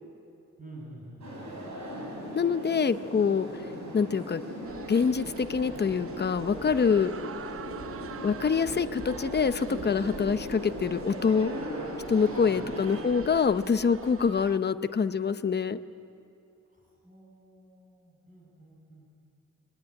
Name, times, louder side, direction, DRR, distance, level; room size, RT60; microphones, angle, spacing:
voice 1, 0.6-1.7 16.7-19.1, right 1 dB, 25° right, -2 dB, 7.0 m, -50 dB
sound 1, 1.2-13.0, equal, 70° right, 7.9 m, -39 dB
voice 2, 2.3-3.5 3.9-4.4 4.9-7.1 8.2-11.6 12.1-15.8, left 6 dB, 35° left, 11 dB, 0.8 m, -25 dB
sound 2, 4.6-14.6, right 7 dB, 50° right, 0.8 m, -44 dB
24.0 x 20.5 x 9.9 m, 2.9 s
wide cardioid pair, 130°, 30 cm